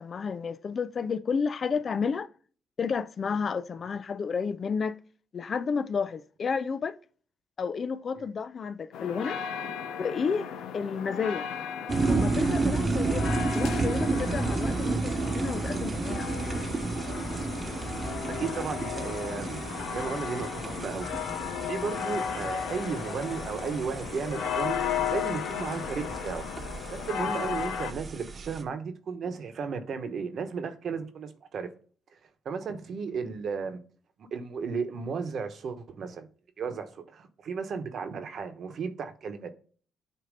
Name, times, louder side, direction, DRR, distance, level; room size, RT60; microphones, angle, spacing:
voice 1, 0.0-2.3 2.8-5.0 5.3-7.0 7.6-9.4 10.0-10.5 10.7-11.5 12.1-16.3, left 5 dB, 45° left, 0.5 m, -31 dB
sound 1, 8.9-27.9, left 8 dB, 85° left, 0.7 m, -35 dB
Electric kettle, 11.9-28.6, right 3 dB, 35° right, 1.0 m, -32 dB
voice 2, 18.3-21.1 21.7-24.8 25.1-26.4 26.9-31.7 32.4-33.8 34.2-36.3 36.6-39.5, right 5 dB, 60° right, 1.1 m, -34 dB
8.2 x 2.8 x 5.2 m
cardioid pair, 90°, 0 cm